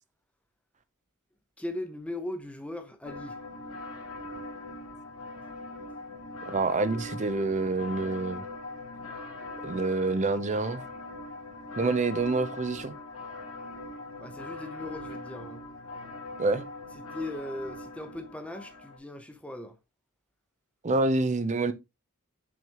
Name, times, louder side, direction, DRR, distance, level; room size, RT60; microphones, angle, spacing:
voice 1, 1.6-3.4 14.2-15.6 17.0-19.8, left 1 dB, 5° left, 0.9 m, -38 dB
sound 1, 3.0-19.0, left 2 dB, 70° left, 2.2 m, -41 dB
voice 2, 6.5-8.4 9.6-10.8 11.8-12.9 16.4-16.7 20.8-21.7, right 3 dB, 30° right, 0.6 m, -27 dB
6.2 x 5.2 x 2.9 m
head